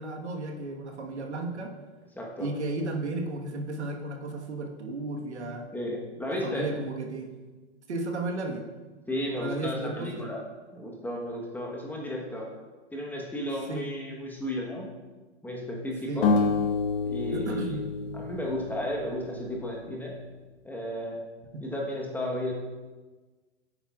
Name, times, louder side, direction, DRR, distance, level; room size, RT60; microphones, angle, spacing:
voice 1, 0.0-1.7 2.4-5.7 6.3-7.3 7.9-8.6 9.4-10.3 13.7-13.9 16.0-16.2 17.3-17.8 21.5-21.6, right 2 dB, 75° right, 2 dB, 1.5 m, -34 dB
voice 2, 2.2-2.5 5.7-6.7 9.1-10.4 10.7-12.5 12.9-14.9 15.4-16.3 17.0-17.8 18.1-20.2 20.6-21.2 21.6-22.5, left 1 dB, 5° left, -1 dB, 1.2 m, -33 dB
sound 1, 16.2-19.4, left 4 dB, 50° left, 1.3 m, -28 dB
9.8 x 8.8 x 2.4 m, 1.3 s
hypercardioid pair, 120°, 35 cm